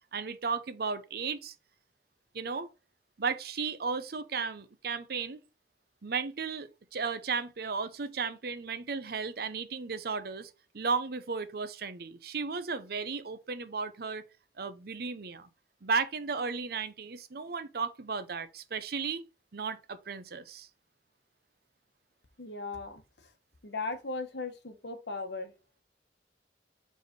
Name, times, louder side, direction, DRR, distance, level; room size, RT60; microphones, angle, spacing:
voice 1, 0.1-1.5 2.3-2.7 3.2-5.4 6.0-14.2 14.6-15.5 15.8-19.2 19.5-20.7, right 5 dB, 60° right, 0.7 m, -34 dB
voice 2, 22.4-23.0 23.6-25.5, left 3 dB, 75° left, 1.2 m, -37 dB
4.9 x 4.1 x 5.2 m
head